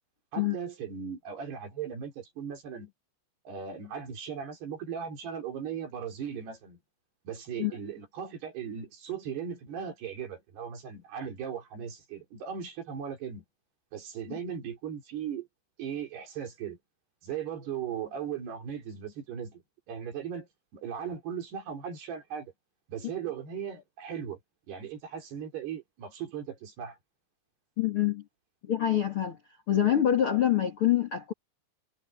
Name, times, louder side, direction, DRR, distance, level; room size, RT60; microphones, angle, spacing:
voice 1, 0.3-2.9 3.5-6.8 7.3-13.4 13.9-15.5 15.8-16.8 17.2-19.6 19.9-22.5 22.9-24.4 24.7-27.0, right 8 dB, 55° right, 5.7 m, -38 dB
voice 2, 27.8-28.2 28.6-29.4 29.7-31.3, left 11 dB, 55° left, 1.5 m, -25 dB
omnidirectional pair, 5.8 m